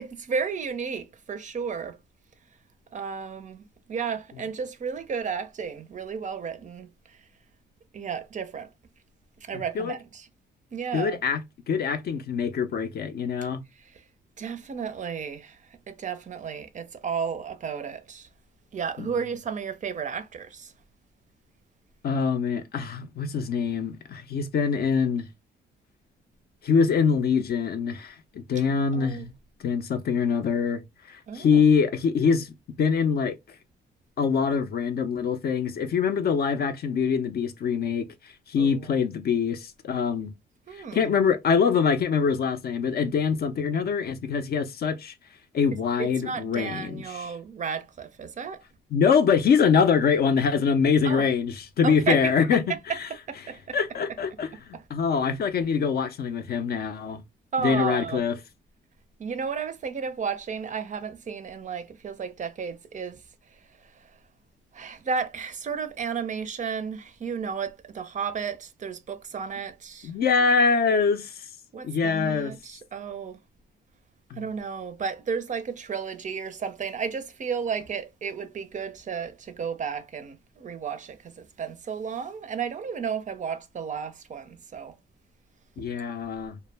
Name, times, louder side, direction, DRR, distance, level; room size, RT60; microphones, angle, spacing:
voice 1, 0.0-2.0 2.9-7.2 7.9-8.7 9.4-10.3 10.7-11.2 13.7-14.0 14.4-18.3 18.7-20.7 28.9-29.3 31.3-31.6 38.5-39.0 40.7-41.1 46.0-48.6 51.0-51.2 51.8-52.3 52.9-53.8 54.7-54.8 57.5-58.3 59.2-63.2 63.5-64.1 64.7-70.1 71.7-73.4 74.3-84.9 85.8-85.9, right 6 dB, 40° right, 0.4 m, -33 dB
voice 2, 9.5-9.9 10.9-11.4 11.7-13.6 19.0-19.1 22.0-25.3 26.6-29.3 29.6-30.8 31.1-32.5 32.8-33.3 34.2-38.0 38.5-40.3 40.9-45.1 45.5-47.3 48.9-52.6 53.0-53.1 53.7-57.2 57.6-58.3 70.0-71.5 71.8-72.5 74.3-74.4 85.8-86.6, left 6 dB, 50° left, 0.5 m, -24 dB
2.1 x 2.0 x 3.2 m
cardioid pair, 90°, 20 cm